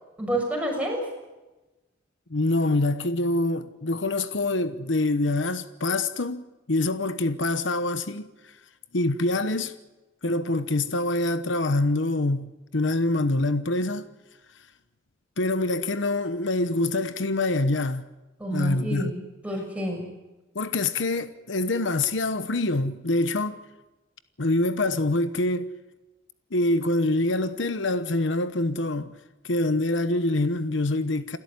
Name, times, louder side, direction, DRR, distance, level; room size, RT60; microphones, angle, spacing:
voice 1, 0.2-1.0 18.4-20.0, right 1 dB, 5° right, 6.6 m, -29 dB
voice 2, 2.3-8.3 8.9-9.8 10.2-14.1 15.4-18.1 18.5-19.1 20.5-23.6 24.4-25.7 26.5-29.1 29.4-31.4, left 2 dB, 75° left, 1.1 m, -25 dB
28.0 x 13.0 x 9.7 m
head